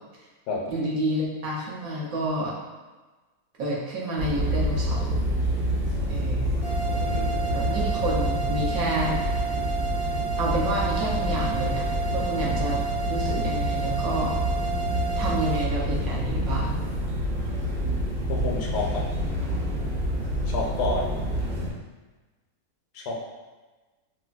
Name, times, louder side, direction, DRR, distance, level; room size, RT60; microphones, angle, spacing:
voice 1, 0.7-2.5 3.6-5.2 6.1-6.6 7.5-9.4 10.4-12.8 13.1-14.4 15.2-16.8, right 1 dB, 65° right, -5 dB, 1.1 m, -29 dB
sound 1, 4.2-21.7, equal, 90° right, 0.5 m, -27 dB
sound 2, 6.6-15.6, right 6 dB, 55° left, 0.7 m, -31 dB
voice 2, 6.9-7.3 18.3-19.0 20.5-21.2 22.9-23.2, left 3 dB, 80° left, -2 dB, 1.2 m, -29 dB
4.8 x 2.1 x 2.3 m, 1.2 s
omnidirectional pair, 1.7 m